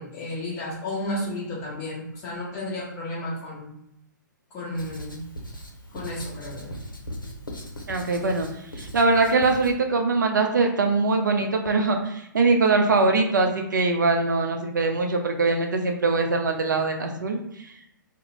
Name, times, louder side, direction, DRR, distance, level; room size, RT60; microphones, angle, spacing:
voice 1, 0.0-3.7 4.5-5.3 5.9-6.8, left 1 dB, 20° left, -7 dB, 1.0 m, -32 dB
Writing, 4.7-9.7, equal, 85° left, 0.7 m, -39 dB
voice 2, 7.9-8.5 8.8-17.7, right 3 dB, 65° right, 4 dB, 0.4 m, -22 dB
2.4 x 2.0 x 3.0 m, 0.79 s
figure-of-eight pair, 120°, 11 cm